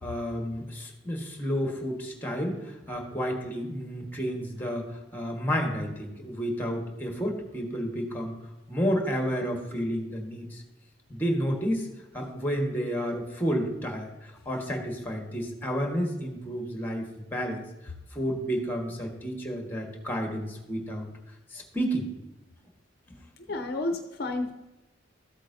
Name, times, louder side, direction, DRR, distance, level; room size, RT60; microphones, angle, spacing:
voice 1, 0.0-8.3 8.7-10.6 11.1-11.9 12.1-17.6 18.1-21.1 21.5-22.1 23.1-23.2, equal, 10° left, 2 dB, 1.5 m, -31 dB
voice 2, 23.4-24.5, left 2 dB, 55° left, 6 dB, 0.7 m, -31 dB
13.5 x 8.2 x 2.7 m, 1.0 s
head